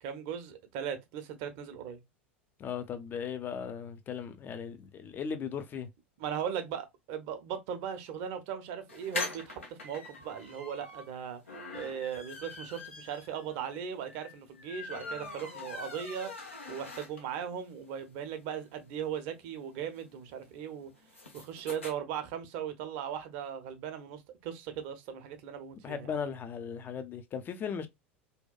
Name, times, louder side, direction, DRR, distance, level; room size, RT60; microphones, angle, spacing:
voice 1, 0.0-2.0 6.2-11.4 11.7-16.3 16.7-20.9 21.3-26.2, right 8 dB, 55° right, 0.6 m, -38 dB
voice 2, 2.6-5.9 25.8-27.9, left 7 dB, 30° left, 0.5 m, -37 dB
sound 1, 8.9-17.5 17.9-18.0 18.2-18.3 18.5-21.9, left 3 dB, 85° left, 0.7 m, -43 dB
2.8 x 2.2 x 2.2 m
figure-of-eight pair, 80°, 7 cm